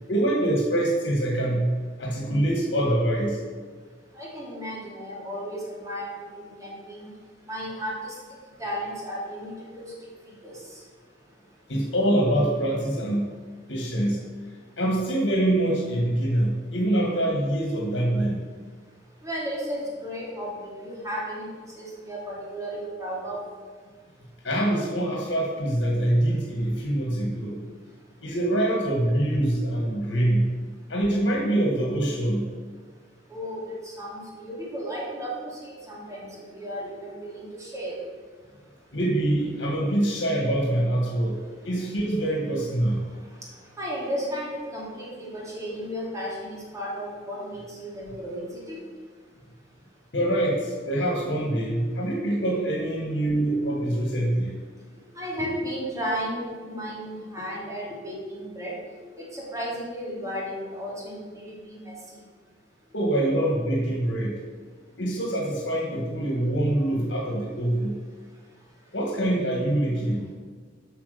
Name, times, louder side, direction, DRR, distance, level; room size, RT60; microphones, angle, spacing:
voice 1, 0.1-1.7 2.0-3.4 11.7-13.3 13.7-14.2 14.8-18.4 24.4-27.6 28.2-30.5 30.9-32.5 38.9-41.4 41.6-43.0 50.1-54.6 62.9-64.4 65.0-68.0 68.9-70.3, right 1 dB, 85° left, -1 dB, 1.8 m, -24 dB
voice 2, 4.1-7.1 7.5-8.2 8.6-10.1 10.4-10.8 19.2-21.5 21.8-23.4 33.3-36.3 36.5-38.0 43.8-48.8 55.1-58.7 59.2-61.9, equal, 20° right, -5 dB, 2.8 m, -34 dB
8.5 x 5.7 x 6.8 m, 1.5 s
head